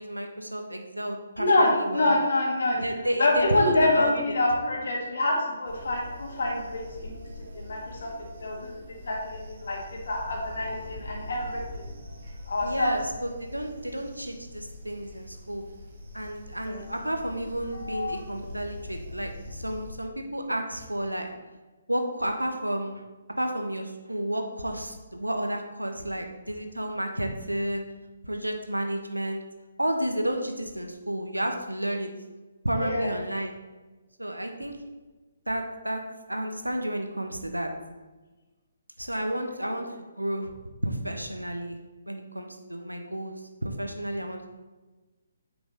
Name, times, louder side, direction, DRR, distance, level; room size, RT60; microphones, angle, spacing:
voice 1, 0.0-2.1 2.8-4.1 12.6-15.6 16.1-21.3 21.9-23.0 23.4-27.8 28.2-29.4 29.8-32.1 32.6-33.5 34.2-34.8 35.5-36.0 36.3-37.7 39.0-40.5 40.8-41.8 42.1-44.5, right 1 dB, 85° right, 4 dB, 1.0 m, -31 dB
voice 2, 1.4-2.8 3.2-7.1 7.5-8.1 8.4-8.7 9.0-11.8 12.5-12.9 16.6-16.8 17.8-18.2 32.8-33.1 39.6-39.8, left 2 dB, 55° left, -1 dB, 1.9 m, -26 dB
sound 1, 5.6-19.9, left 1 dB, 40° right, 1.5 m, -43 dB
8.8 x 5.1 x 3.2 m, 1.2 s
figure-of-eight pair, 135°, 0 cm